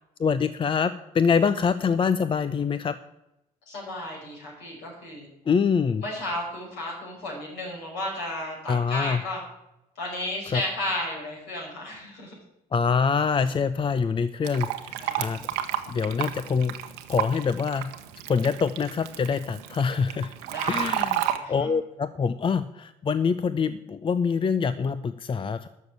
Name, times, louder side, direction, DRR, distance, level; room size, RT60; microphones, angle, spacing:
voice 1, 0.2-2.9 5.5-6.0 8.7-9.2 10.5-10.6 12.7-15.4 15.9-16.7 17.1-17.9 18.3-20.3 20.7-25.7, left 6 dB, 25° left, 14 dB, 0.6 m, -25 dB
voice 2, 3.7-5.3 6.0-9.4 10.0-12.4 15.0-15.5 20.4-21.5, left 1 dB, 60° left, -2 dB, 5.7 m, -34 dB
Fill (with liquid), 14.4-21.4, right 12 dB, 65° right, 1.0 m, -31 dB
13.0 x 6.6 x 8.5 m, 0.90 s
figure-of-eight pair, 50°, 20 cm